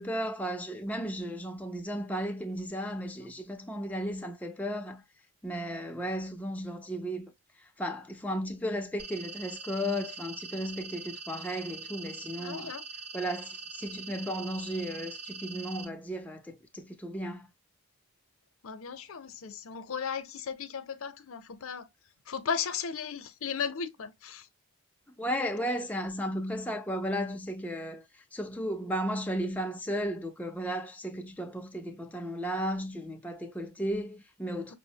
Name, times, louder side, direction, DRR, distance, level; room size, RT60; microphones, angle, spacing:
voice 1, 0.0-5.0 5.4-7.3 7.6-12.7 13.1-17.5 25.2-34.7, equal, 5° left, 0.3 m, -34 dB
sound 1, 9.0-15.8, right 4 dB, 30° right, 0.9 m, -43 dB
voice 2, 12.4-12.8 18.6-21.9 22.3-24.5, left 6 dB, 70° left, 0.5 m, -36 dB
5.4 x 2.0 x 2.6 m
head